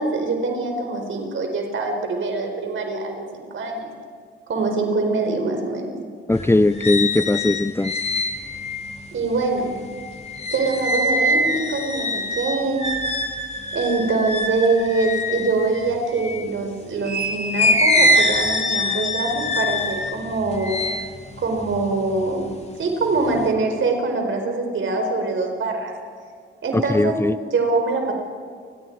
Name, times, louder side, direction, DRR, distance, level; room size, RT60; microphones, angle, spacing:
voice 1, 0.0-3.9 4.5-6.0 9.1-9.7 10.5-12.9 13.7-20.8 21.4-22.5 22.8-25.9 26.6-27.2 27.5-28.1, right 3 dB, 70° right, 3 dB, 4.8 m, -24 dB
sound 1, 6.3-16.5 17.0-22.5 22.9-23.5, left 1 dB, 30° left, 2.3 m, -24 dB
voice 2, 6.3-7.9 26.7-27.3, left 2 dB, 10° left, 13 dB, 0.6 m, -19 dB
29.0 x 21.5 x 4.8 m, 2.1 s
cardioid pair, 80°, 21 cm